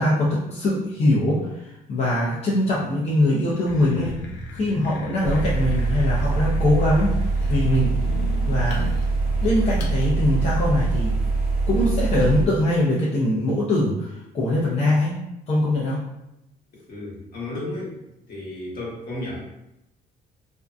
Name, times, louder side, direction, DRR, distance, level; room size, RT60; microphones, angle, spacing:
voice 1, 0.0-4.2 4.5-7.2 7.5-7.9 8.5-8.9 9.4-11.2 11.7-15.1 15.5-16.0, left 1 dB, 40° left, -6 dB, 0.6 m, -22 dB
sound 1, 3.7-10.0, left 1 dB, 85° left, 0.5 m, -36 dB
sound 2, 5.2-12.4, right 3 dB, 60° right, 0.8 m, -23 dB
voice 2, 16.9-18.0 18.3-19.4, left 1 dB, 60° left, -5 dB, 1.2 m, -33 dB
2.6 x 2.2 x 2.3 m, 0.88 s
cardioid pair, 110°, 17 cm